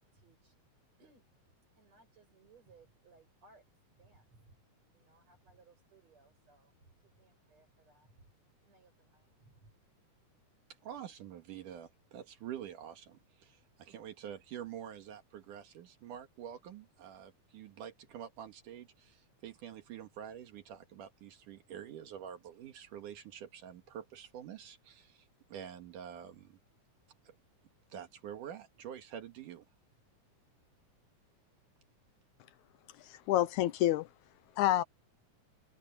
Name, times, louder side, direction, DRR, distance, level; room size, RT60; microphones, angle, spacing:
voice 1, 0.1-0.6 1.0-1.2 1.8-4.6 4.9-8.3 8.6-9.7, right 3 dB, 55° right, 8.8 m, -64 dB
voice 2, 10.8-26.6 27.2-27.3 27.9-29.6, right 9 dB, 80° right, 3.1 m, -47 dB
voice 3, 33.0-34.1 34.6-34.8, left 13 dB, 75° left, 1.9 m, -28 dB
omnidirectional pair, 3.6 m